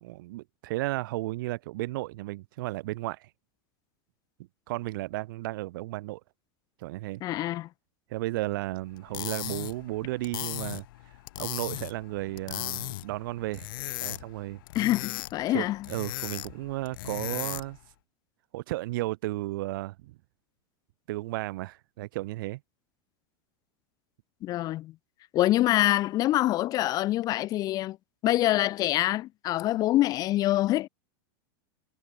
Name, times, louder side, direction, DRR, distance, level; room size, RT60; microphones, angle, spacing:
voice 1, 0.0-3.3 4.7-6.2 6.8-7.2 8.1-10.8 11.4-13.7 14.0-14.6 15.5-17.8 18.5-20.2 21.1-22.6, right 19 dB, 60° right, 4.6 m, -34 dB
voice 2, 7.2-7.7 14.7-15.9 24.4-24.9 25.3-28.0 28.2-30.9, left 15 dB, 30° left, 3.4 m, -25 dB
sound 1, 8.9-17.8, left 17 dB, 65° left, 3.6 m, -37 dB
supercardioid pair, 165°, 12 cm